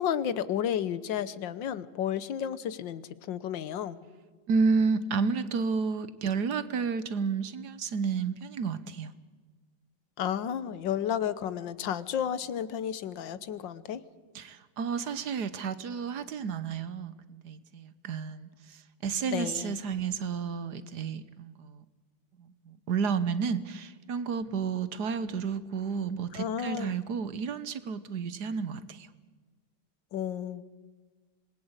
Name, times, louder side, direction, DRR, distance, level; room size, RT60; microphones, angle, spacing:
voice 1, 0.0-4.0 10.2-14.0 19.3-19.8 26.3-27.0 30.1-30.6, left 9 dB, 80° left, 16 dB, 1.7 m, -32 dB
voice 2, 4.5-9.1 14.3-21.8 22.7-29.1, right 5 dB, 65° right, 14 dB, 1.5 m, -31 dB
26.0 x 20.5 x 8.1 m, 1.5 s
omnidirectional pair, 2.0 m